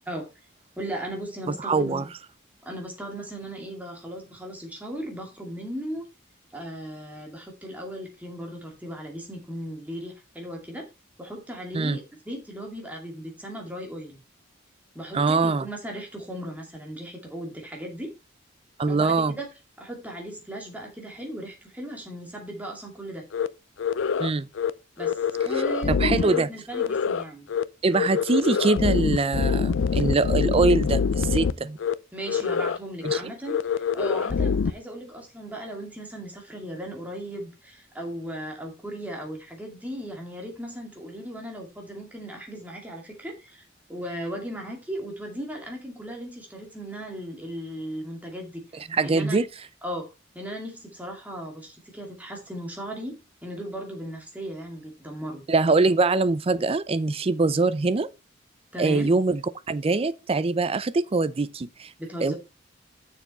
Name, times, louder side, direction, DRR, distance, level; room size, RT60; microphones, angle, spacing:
voice 1, 0.8-2.1 2.6-6.0 6.5-10.9 11.2-14.2 14.9-18.2 18.9-19.5 19.8-23.2 25.0-25.2 25.4-27.5 32.1-43.6 43.9-48.5 49.0-49.4 49.8-50.1 50.3-55.5 58.7-59.1 62.0-62.4, right 1 dB, 10° right, 2.4 m, -37 dB
voice 2, 1.6-2.0 11.7-12.0 15.1-15.7 18.8-19.3 24.2-24.5 25.9-26.5 27.8-31.8 33.0-33.2 48.9-49.5 55.5-58.1 58.8-59.4 59.7-61.9 62.2-62.3, right 3 dB, 30° right, 0.5 m, -23 dB
sound 1, 23.3-23.5 23.8-24.3 24.6-24.7 25.0-26.4 26.7-27.2 27.5-27.6 27.9-31.5 31.8-31.9 32.3-32.8 33.0-33.2 33.5-34.7, left 6 dB, 75° left, 0.4 m, -25 dB
6.9 x 6.9 x 4.3 m
head